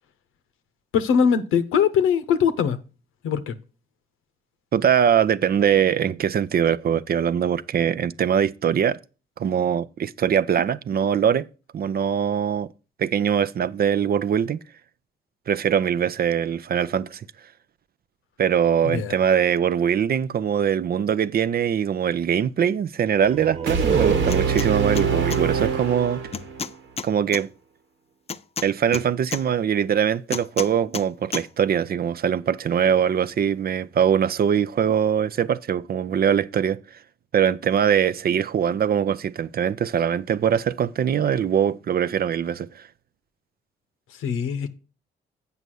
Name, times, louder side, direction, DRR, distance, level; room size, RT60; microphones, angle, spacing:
voice 1, 0.9-2.8 3.2-3.6 18.8-19.2 44.1-44.7, left 7 dB, 85° left, 0.8 m, -21 dB
voice 2, 4.7-9.0 9.4-11.5 11.7-12.7 13.0-14.6 15.5-17.2 18.4-26.2 27.0-27.5 28.6-36.8 37.3-42.8, right 8 dB, 50° right, 0.5 m, -22 dB
sound 1, 23.2-26.7, right 6 dB, 30° right, 1.1 m, -29 dB
sound 2, 23.7-26.7, right 6 dB, 70° right, 1.3 m, -25 dB
sound 3, 24.3-24.7 25.0-25.4 26.3-27.4 28.3-29.4 30.3-31.1 31.3-31.5, left 6 dB, 30° left, 0.5 m, -31 dB
7.9 x 5.5 x 6.2 m
supercardioid pair, 55°, 21 cm